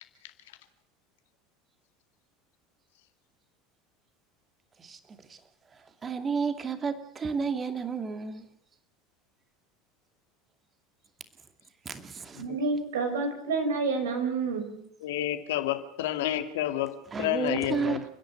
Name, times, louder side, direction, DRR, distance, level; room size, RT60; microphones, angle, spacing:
voice 1, 4.8-5.4 6.0-8.5 11.8-12.4 17.1-18.1, right 5 dB, 30° right, 2.5 m, -32 dB
voice 2, 12.4-14.8, right 4 dB, 75° right, 5.6 m, -29 dB
voice 3, 15.0-18.0, left 13 dB, 70° left, 2.2 m, -30 dB
30.0 x 10.5 x 9.6 m
hypercardioid pair, 75°, 0 cm